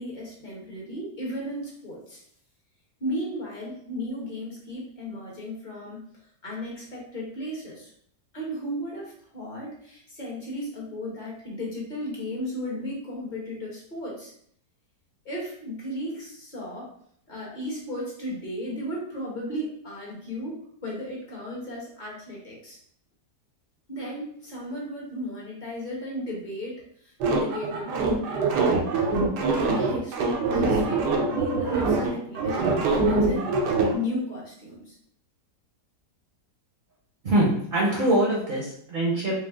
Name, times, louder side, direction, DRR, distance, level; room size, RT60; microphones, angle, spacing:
voice 1, 0.0-2.2 3.0-6.0 6.4-7.9 8.3-14.3 15.2-16.9 17.3-22.8 23.9-28.5 29.4-33.6 33.9-35.0, left 1 dB, 30° left, -4 dB, 1.0 m, -35 dB
sound 1, 27.2-33.9, right 3 dB, 75° right, 1.3 m, -24 dB
voice 2, 37.2-39.4, right 1 dB, 40° right, -4 dB, 0.8 m, -23 dB
4.9 x 2.0 x 3.4 m, 0.65 s
omnidirectional pair, 1.9 m